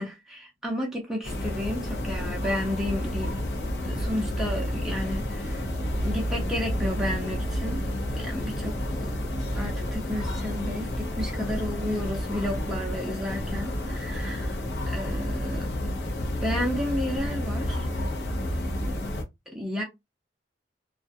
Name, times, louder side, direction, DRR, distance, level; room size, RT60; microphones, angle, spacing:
voice 1, 0.0-3.4 3.8-5.6 6.0-7.9 8.1-9.2 9.5-14.6 14.9-15.7 16.4-17.9 19.5-19.8, left 1 dB, ahead, 0.5 m, -32 dB
sound 1, 1.2-19.2, left 1 dB, 80° left, 0.7 m, -30 dB
2.4 x 2.2 x 2.5 m
head